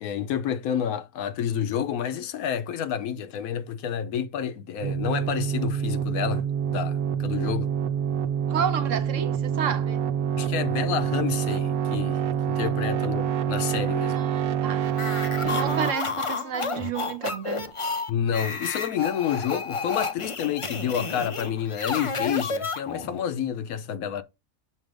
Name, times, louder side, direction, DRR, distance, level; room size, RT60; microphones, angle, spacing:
voice 1, 0.0-7.7 10.4-12.2 12.5-14.2 18.1-24.2, left 9 dB, 75° left, 1.0 m, -29 dB
sound 1, 4.8-15.9, right 8 dB, 85° right, 1.2 m, -26 dB
voice 2, 8.5-10.0 14.2-14.9 15.4-17.7, right 8 dB, 65° right, 0.9 m, -31 dB
sound 2, 14.9-23.2, left 4 dB, 55° left, 0.3 m, -31 dB
7.3 x 2.8 x 4.9 m
omnidirectional pair, 1.6 m